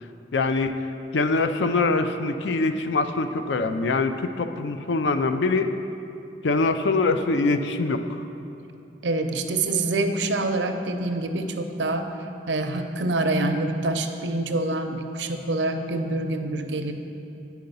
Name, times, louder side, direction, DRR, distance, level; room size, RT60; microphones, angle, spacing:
voice 1, 0.3-0.7 1.1-5.7 6.4-8.2, left 3 dB, 75° left, 8 dB, 0.4 m, -23 dB
voice 2, 9.0-12.1 12.5-16.9, right 2 dB, 80° right, 6 dB, 0.6 m, -26 dB
9.0 x 4.7 x 5.4 m, 2.7 s
head